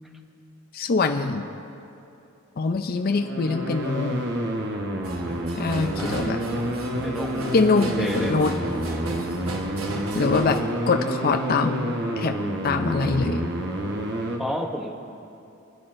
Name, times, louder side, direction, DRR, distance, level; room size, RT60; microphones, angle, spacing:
voice 1, 0.7-1.5 2.6-4.2 5.6-6.4 7.5-8.5 10.1-12.3 12.6-13.5, left 4 dB, 45° left, 6 dB, 0.5 m, -24 dB
sound 1, 3.0-14.4, right 1 dB, 55° right, 1.1 m, -29 dB
sound 2, 5.0-10.6, right 2 dB, 85° right, 1.3 m, -35 dB
voice 2, 6.0-6.4 7.0-8.5 14.4-14.9, equal, ahead, 2 dB, 0.8 m, -31 dB
26.5 x 9.7 x 2.6 m, 2.7 s
head